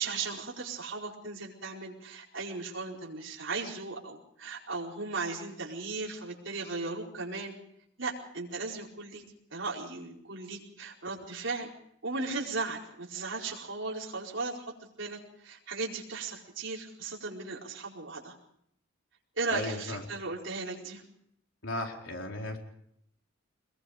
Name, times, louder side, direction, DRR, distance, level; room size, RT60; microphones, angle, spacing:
voice 1, 0.0-7.5 8.0-9.2 9.5-11.7 12.0-18.4 19.4-21.0, right 3 dB, 65° right, -3 dB, 4.8 m, -36 dB
voice 2, 19.5-20.0 21.6-22.6, left 2 dB, 70° left, 1 dB, 4.4 m, -35 dB
25.5 x 21.5 x 5.1 m, 0.72 s
head